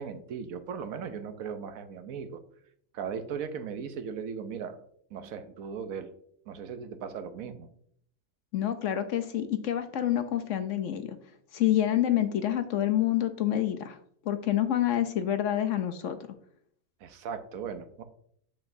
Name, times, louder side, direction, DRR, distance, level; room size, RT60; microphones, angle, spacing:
voice 1, 0.0-2.4 2.9-4.8 5.1-6.1 6.5-7.7 17.0-18.0, right 6 dB, 75° right, 8 dB, 1.1 m, -37 dB
voice 2, 8.5-11.2 11.5-14.0 14.3-16.2, left 11 dB, 65° left, 9 dB, 0.9 m, -27 dB
7.8 x 7.0 x 2.6 m, 0.66 s
omnidirectional pair, 1.5 m